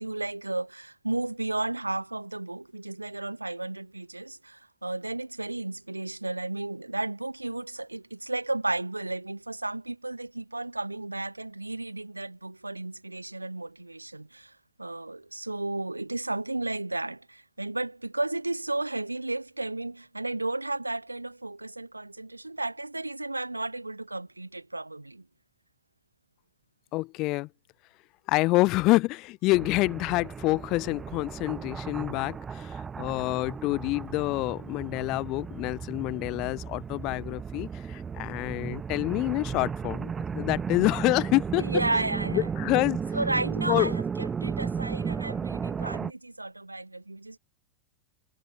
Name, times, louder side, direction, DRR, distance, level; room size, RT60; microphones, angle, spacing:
voice 1, 0.0-25.3 41.6-42.5 43.1-47.4, right 2 dB, 85° right, 0.4 m, -33 dB
voice 2, 26.9-27.5 28.3-41.6 42.3-43.0 43.7-43.9, left 21 dB, 40° left, 0.4 m, -27 dB
sound 1, 29.5-46.1, right 6 dB, 20° right, 0.5 m, -34 dB
figure-of-eight pair, 90°, 0 cm